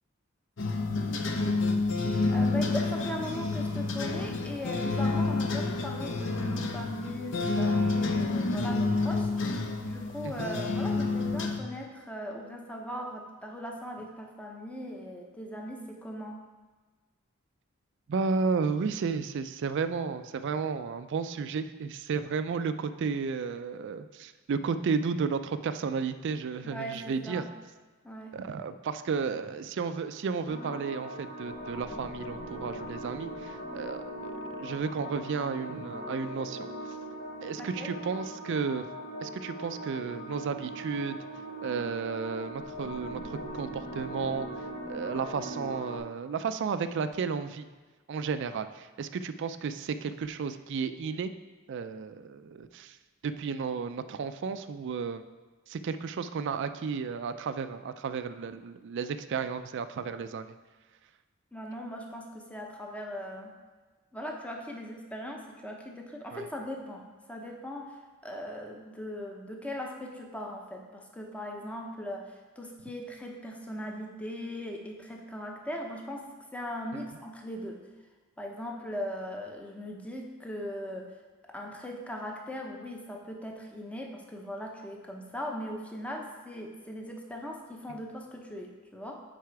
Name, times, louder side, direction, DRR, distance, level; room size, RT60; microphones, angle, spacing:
sound 1, 0.6-11.6, left 3 dB, 65° left, 0.7 m, -29 dB
voice 1, 2.3-16.4 26.6-27.5 28.0-28.4 37.6-37.9 61.5-63.5 64.1-77.8 78.4-81.1 81.5-89.2, equal, 5° left, 1 dB, 0.7 m, -39 dB
voice 2, 18.1-27.4 28.3-36.7 37.4-38.9 39.2-41.2 41.6-44.5 44.9-47.7 48.1-51.3 51.7-53.0 53.2-55.2 55.7-60.5 66.3-66.5 76.9-77.0, right 5 dB, 60° right, 11 dB, 0.4 m, -33 dB
sound 2, 30.5-46.0, right 1 dB, 40° left, 1.0 m, -40 dB
9.4 x 4.1 x 4.6 m, 1.3 s
head